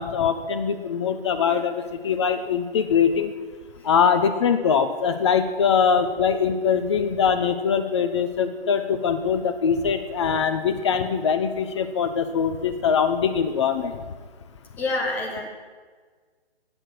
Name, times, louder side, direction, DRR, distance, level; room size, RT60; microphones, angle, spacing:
voice 1, 0.0-3.3 3.8-14.0, left 6 dB, 30° left, 8 dB, 0.8 m, -22 dB
voice 2, 14.8-15.5, left 2 dB, 5° left, 0 dB, 1.1 m, -27 dB
19.0 x 7.1 x 6.2 m, 1.5 s
figure-of-eight pair, 145°, 31 cm